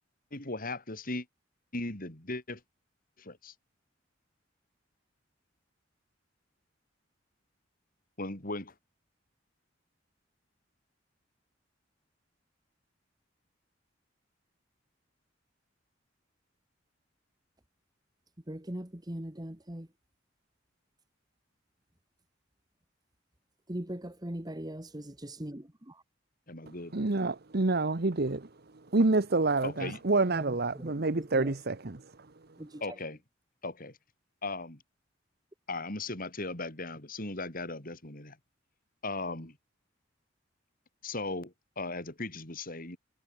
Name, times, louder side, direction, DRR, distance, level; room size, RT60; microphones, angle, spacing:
voice 1, 0.3-1.2 1.7-2.6 3.2-3.5 8.2-8.7 26.5-27.1 29.6-30.0 32.8-33.2 33.6-33.9 34.4-34.8 35.7-38.4 39.0-39.5 41.0-43.0, left 2 dB, 50° left, 4.6 m, -37 dB
voice 2, 18.5-19.9 23.7-26.0 30.3-30.4 30.7-30.9 31.3-31.5 32.6-33.0, right 1 dB, 20° right, 1.8 m, -40 dB
voice 3, 26.9-28.5 28.9-32.1, right 3 dB, 55° right, 1.1 m, -27 dB
head